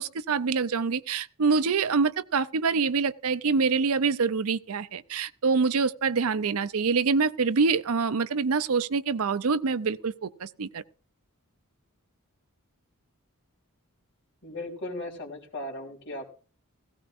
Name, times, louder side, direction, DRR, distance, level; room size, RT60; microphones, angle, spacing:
voice 1, 0.0-10.8, right 5 dB, 70° right, 0.6 m, -25 dB
voice 2, 14.4-16.3, left 1 dB, 55° left, 3.6 m, -37 dB
17.0 x 15.5 x 2.6 m
head